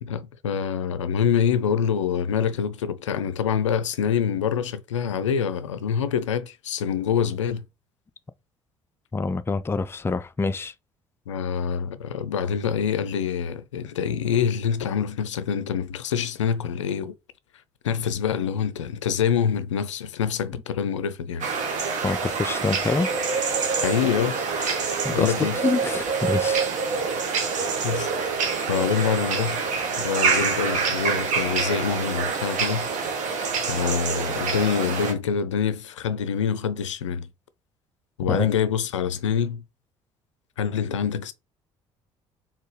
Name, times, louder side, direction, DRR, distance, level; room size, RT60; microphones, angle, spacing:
voice 1, 0.0-7.6 11.3-17.1 17.8-21.5 23.8-24.8 25.1-25.6 27.8-28.1 28.7-29.6 30.0-33.3 33.7-37.3 38.2-39.6 40.6-41.3, left 7 dB, 80° left, 0.4 m, -26 dB
voice 2, 9.1-10.7 22.0-23.1 25.0-26.7 38.3-38.5, left 4 dB, 15° left, 0.4 m, -26 dB
sound 1, 21.4-35.1, right 5 dB, 55° right, 1.3 m, -26 dB
4.3 x 3.5 x 3.2 m
figure-of-eight pair, 50°, 15 cm